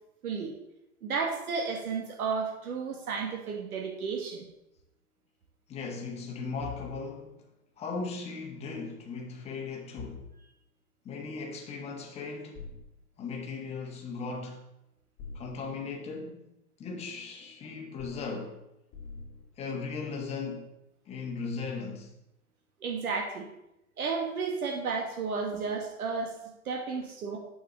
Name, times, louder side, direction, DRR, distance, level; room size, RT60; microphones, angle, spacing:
voice 1, 0.2-0.5 1.0-4.4 22.8-23.5 24.0-26.3 26.6-27.4, right 5 dB, 70° right, 1.7 m, -32 dB
voice 2, 5.7-7.4 7.8-10.2 11.0-12.6 13.2-14.6 15.3-16.5 16.8-18.6 19.6-20.7 21.1-22.1, left 4 dB, 15° left, 1.3 m, -37 dB
sound 1, 6.6-6.9 10.0-10.3 12.5-12.8 15.2-15.5 18.0-18.2 18.9-19.5, left 5 dB, 35° left, 1.6 m, -43 dB
7.0 x 5.0 x 6.8 m
hypercardioid pair, 140°, 45 cm